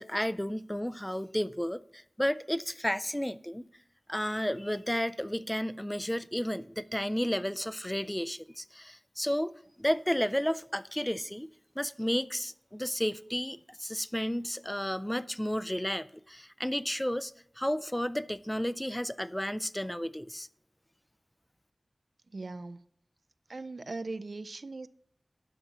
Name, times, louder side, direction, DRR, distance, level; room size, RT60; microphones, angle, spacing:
voice 1, 0.0-3.7 4.1-9.5 9.8-11.5 11.8-20.5, equal, 10° left, 0.3 m, -32 dB
voice 2, 22.3-22.8 23.5-24.9, right 3 dB, 70° right, 0.4 m, -39 dB
12.0 x 4.0 x 7.2 m
wide cardioid pair, 65°, 0 cm